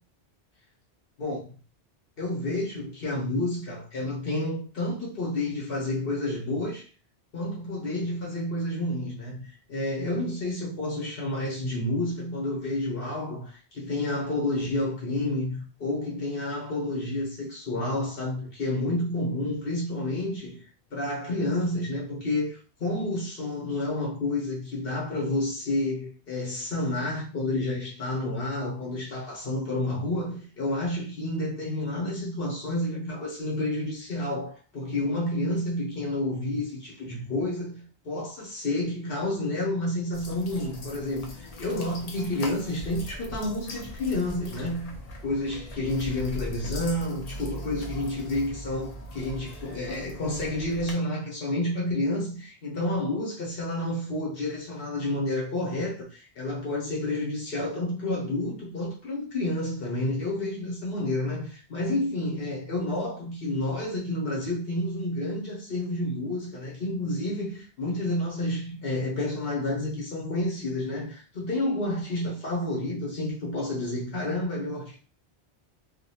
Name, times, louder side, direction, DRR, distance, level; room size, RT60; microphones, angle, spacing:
voice 1, 2.2-6.9 7.3-44.9 45.2-75.0, left 1 dB, 65° left, 1.1 m, -30 dB
sound 1, 40.1-50.9, left 1 dB, 50° left, 0.5 m, -40 dB
2.7 x 2.2 x 2.8 m
omnidirectional pair, 1.1 m